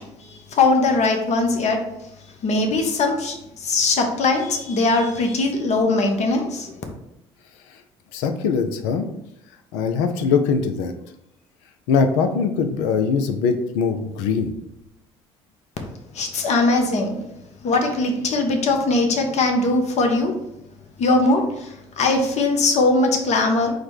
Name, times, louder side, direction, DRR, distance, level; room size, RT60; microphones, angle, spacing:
voice 1, 0.3-1.8 2.4-6.7 16.1-17.2 17.6-20.4 21.0-23.7, left 3 dB, 50° left, 3 dB, 0.9 m, -20 dB
voice 2, 8.1-9.1 9.7-10.9 11.9-14.5, left 5 dB, 75° left, 8 dB, 0.5 m, -21 dB
4.8 x 2.2 x 4.7 m, 0.82 s
hypercardioid pair, 55°, 14 cm